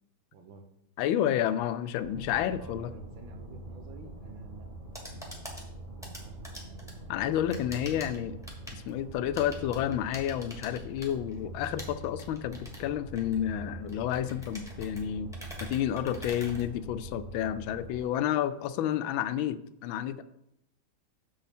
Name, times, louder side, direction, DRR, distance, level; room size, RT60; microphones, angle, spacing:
voice 1, 0.3-0.7 2.0-2.2 2.5-5.3 5.9-7.0, right 4 dB, 75° right, 5 dB, 1.7 m, -51 dB
voice 2, 1.0-2.9 7.1-8.4 8.7-15.3 15.6-20.2, left 10 dB, 80° left, 13 dB, 1.3 m, -30 dB
sound 1, 2.0-18.0, right 2 dB, 20° right, 2.3 m, -44 dB
sound 2, 4.7-17.3, equal, ahead, 1.5 m, -47 dB
7.6 x 7.1 x 4.2 m, 0.80 s
omnidirectional pair, 2.2 m